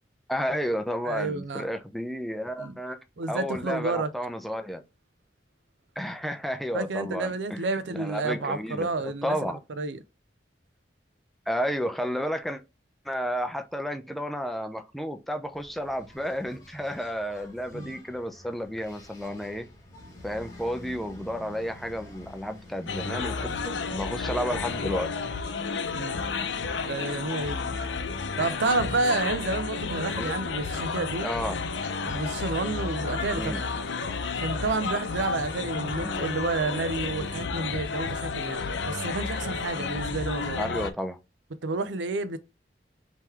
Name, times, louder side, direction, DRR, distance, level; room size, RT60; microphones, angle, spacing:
voice 1, 0.3-3.0 3.3-4.8 6.0-7.7 7.9-9.6 11.5-12.6 13.0-19.7 20.2-25.1 30.1-30.4 31.2-31.6 33.4-33.6 36.0-36.2 40.6-41.2, equal, ahead, 0.4 m, -32 dB
voice 2, 1.0-1.7 2.6-2.8 3.2-4.1 6.7-10.0 17.7-18.0 25.9-26.2 26.8-27.7 28.4-31.3 32.1-33.8 34.4-40.7 41.6-42.4, right 3 dB, 90° right, 0.6 m, -30 dB
Engine, 15.5-28.5, left 1 dB, 20° left, 1.4 m, -49 dB
sound 1, 22.9-40.9, left 4 dB, 90° left, 0.6 m, -31 dB
3.7 x 3.1 x 4.3 m
head